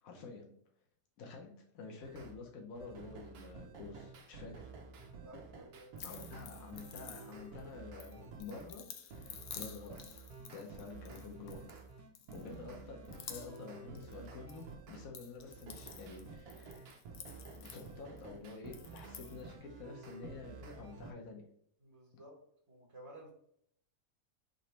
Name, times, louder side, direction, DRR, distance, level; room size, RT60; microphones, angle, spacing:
voice 1, 0.0-0.5 1.2-4.7 6.0-11.6 12.3-17.0 17.5-21.4, left 4 dB, 75° left, 0 dB, 1.3 m, -49 dB
sound 1, 2.0-2.4 2.7-8.7 9.1-15.1 15.5-21.1, right 4 dB, 90° right, 1.2 m, -51 dB
voice 2, 5.2-6.2 21.8-22.4 22.7-23.3, equal, 25° right, -4 dB, 0.9 m, -54 dB
sound 2, 6.0-7.6 8.0-11.8 12.1-12.7 13.0-14.6 14.9-18.2 18.7-19.4, left 8 dB, 90° left, 1.1 m, -51 dB
sound 3, 7.3-18.5, equal, 20° left, 0.8 m, -69 dB
4.0 x 3.1 x 4.3 m, 0.68 s
omnidirectional pair, 1.5 m